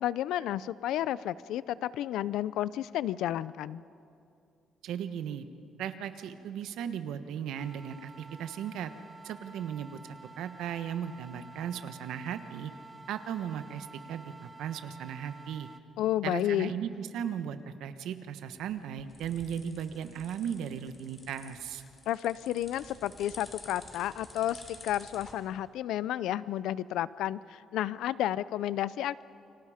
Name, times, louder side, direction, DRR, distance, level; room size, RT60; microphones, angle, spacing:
voice 1, 0.0-3.8 16.0-16.7 22.1-29.2, left 12 dB, 85° left, 18 dB, 0.5 m, -31 dB
voice 2, 4.8-5.4 5.8-8.9 9.2-12.7 13.1-15.7 16.2-21.8, right 8 dB, 80° right, 10 dB, 1.3 m, -37 dB
sound 1, 7.5-15.8, right 3 dB, 15° right, 0.8 m, -51 dB
sound 2, 18.6-25.3, left 3 dB, 25° left, 3.1 m, -51 dB
29.5 x 24.5 x 5.1 m, 2.5 s
cardioid pair, 150°, 0 cm